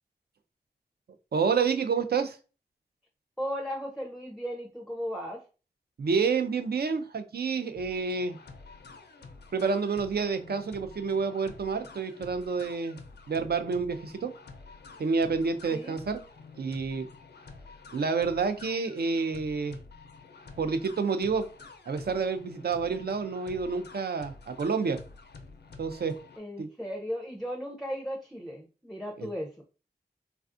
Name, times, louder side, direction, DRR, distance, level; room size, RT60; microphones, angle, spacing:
voice 1, 1.3-2.4 6.0-8.4 9.5-13.0 13.3-14.3 15.0-16.2 16.6-17.1 17.9-19.8 20.6-21.5 21.9-25.0 25.8-26.2 26.6-26.7 29.2-29.3, right 5 dB, 70° right, 8 dB, 0.4 m, -29 dB
voice 2, 3.4-5.4 15.7-15.9 26.4-29.6, equal, ahead, 1 dB, 0.5 m, -36 dB
sound 1, 7.7-26.4, left 4 dB, 80° left, 0.4 m, -50 dB
3.3 x 2.3 x 2.5 m, 0.35 s
cardioid pair, 45°, 17 cm